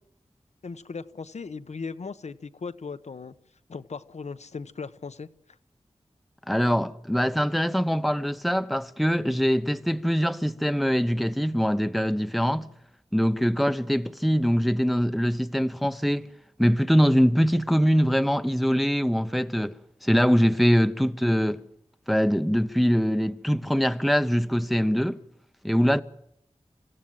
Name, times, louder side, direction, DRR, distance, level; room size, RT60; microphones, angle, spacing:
voice 1, 0.6-3.3 3.7-5.3, left 4 dB, 80° left, 0.9 m, -37 dB
voice 2, 6.5-12.7 13.1-16.3 16.6-19.8 20.0-21.6 22.1-25.2 25.6-26.0, equal, ahead, 0.8 m, -23 dB
27.0 x 16.0 x 7.6 m
wide cardioid pair, 85°, 11 cm